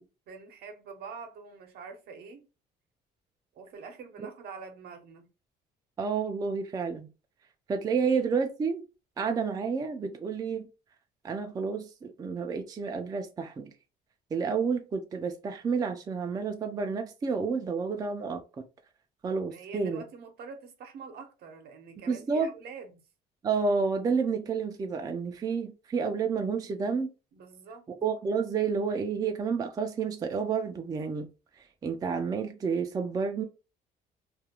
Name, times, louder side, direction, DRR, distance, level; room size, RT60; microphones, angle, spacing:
voice 1, 0.3-2.5 3.5-5.3 8.0-8.1 19.5-23.0 27.3-27.8, right 5 dB, 70° right, 0.7 m, -45 dB
voice 2, 6.0-7.1 7.7-8.8 9.2-10.7 11.2-13.7 14.3-18.6 19.2-20.0 22.1-22.5 23.4-27.1 28.0-31.3 31.8-33.4, right 5 dB, 20° right, 0.3 m, -30 dB
2.4 x 2.1 x 2.8 m
cardioid pair, 110°, 17 cm